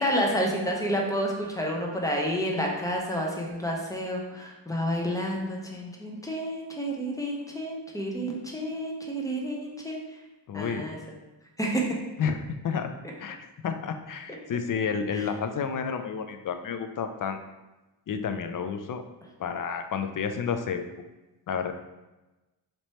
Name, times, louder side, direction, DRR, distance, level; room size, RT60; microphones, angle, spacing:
voice 1, 0.0-10.0 10.5-11.0 11.6-12.0 15.1-15.3, equal, 10° left, -1 dB, 0.8 m, -29 dB
voice 2, 10.5-10.9 12.2-12.9 13.2-13.4 13.6-17.4 18.1-19.0 19.4-20.8 21.5-21.7, left 6 dB, 50° left, 8 dB, 0.5 m, -30 dB
3.2 x 2.9 x 4.2 m, 1.1 s
cardioid pair, 80°, 43 cm